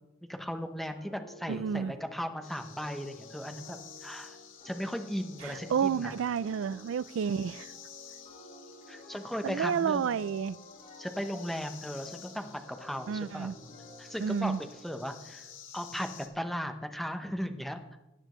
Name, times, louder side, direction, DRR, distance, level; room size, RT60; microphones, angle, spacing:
voice 1, 0.3-4.4 4.6-6.1 8.9-10.2 11.0-13.6 14.0-15.5 15.7-16.1 16.3-17.8, equal, ahead, 6 dB, 0.8 m, -37 dB
sound 1, 0.9-15.6, left 1 dB, 45° left, 4.4 m, -53 dB
voice 2, 1.5-1.9 5.4-7.7 9.4-10.6 13.1-13.5 14.2-14.6, right 7 dB, 80° right, 20 dB, 0.3 m, -30 dB
sound 2, 2.4-16.3, left 8 dB, 85° left, 1.4 m, -52 dB
17.0 x 10.0 x 3.1 m, 0.95 s
head